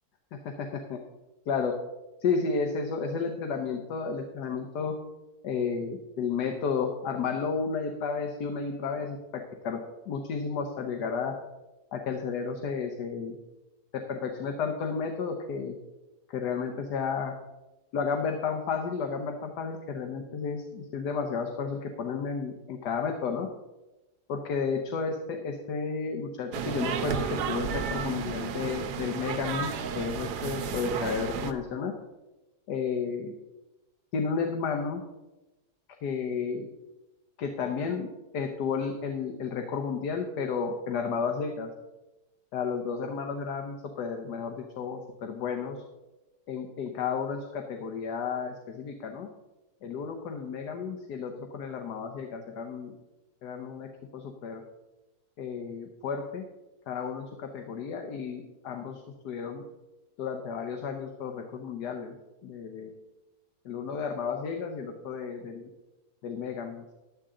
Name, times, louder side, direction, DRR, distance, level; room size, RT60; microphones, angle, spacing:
voice 1, 0.3-1.0 1.5-1.7 2.2-4.9 5.4-9.8 10.1-11.3 11.9-13.4 13.9-15.8 16.3-17.3 17.9-23.5 24.3-31.9 32.7-33.3 34.1-35.0 36.0-36.7 37.4-41.7 42.5-45.8 46.5-49.3 49.8-52.9 53.4-53.9 54.1-54.6 55.4-56.5 56.9-59.6 60.2-62.1 62.4-62.9 63.6-65.7 66.2-66.8, left 5 dB, 90° left, 3 dB, 1.5 m, -32 dB
sound 1, 26.5-31.5, right 7 dB, 85° right, 1.3 m, -32 dB
11.5 x 9.7 x 3.7 m, 1.1 s
omnidirectional pair, 1.7 m